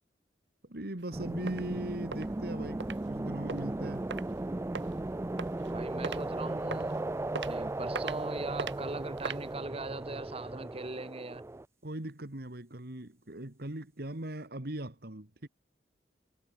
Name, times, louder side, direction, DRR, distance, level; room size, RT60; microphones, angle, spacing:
voice 1, 0.7-4.1 11.8-15.5, right 1 dB, 60° right, 2.2 m, -39 dB
sound 1, 1.0-1.1 1.5-1.6 2.1-2.3 2.8-3.0 3.5-3.6 4.1-4.2 4.7-4.9 5.4-5.7 6.0-6.2 6.7-6.9 7.3-7.5 7.9-8.2 8.6-8.7 9.2-9.4, right 5 dB, 85° right, 1.0 m, -37 dB
sound 2, 1.1-11.7, right 2 dB, 15° right, 0.4 m, -36 dB
voice 2, 5.7-7.1 7.5-11.4, right 2 dB, 35° right, 1.5 m, -40 dB
head